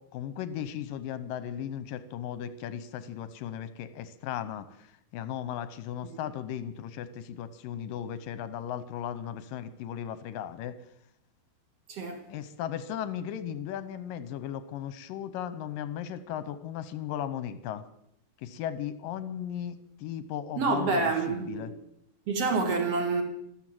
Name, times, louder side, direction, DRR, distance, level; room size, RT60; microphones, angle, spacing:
voice 1, 0.0-4.9 5.1-10.8 12.3-17.8 18.4-21.7, left 10 dB, 75° left, 2.2 m, -36 dB
voice 2, 11.9-12.2 20.6-21.7 22.3-23.2, right 4 dB, 45° right, 3.1 m, -27 dB
13.5 x 13.5 x 7.7 m
omnidirectional pair, 4.5 m